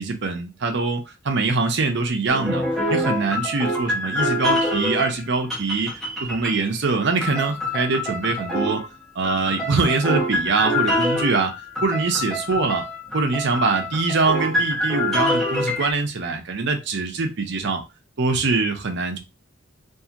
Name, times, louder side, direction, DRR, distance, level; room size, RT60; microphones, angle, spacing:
voice 1, 0.0-2.6 2.9-5.9 6.2-8.8 9.2-11.5 11.8-12.8 13.1-17.8 18.2-19.2, right 3 dB, 60° right, 4 dB, 0.7 m, -23 dB
sound 1, 2.3-5.2 5.5-6.8 7.2-8.9 9.2-15.9, left 1 dB, ahead, 1.1 m, -25 dB
2.8 x 2.6 x 2.4 m, 0.26 s
head